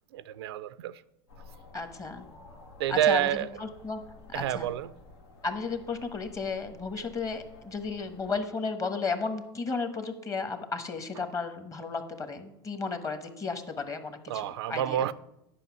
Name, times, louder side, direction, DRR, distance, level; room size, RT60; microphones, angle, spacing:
voice 1, 0.1-1.0 2.8-3.5 4.3-4.9 14.3-15.1, right 11 dB, 85° right, 0.4 m, -28 dB
sound 1, 1.3-8.4, left 3 dB, 85° left, 1.3 m, -52 dB
voice 2, 1.7-2.3 2.9-3.3 3.6-4.0 4.3-4.7 5.4-15.1, left 4 dB, 25° left, 1.2 m, -34 dB
9.9 x 5.4 x 6.1 m
hypercardioid pair, 100°, 13 cm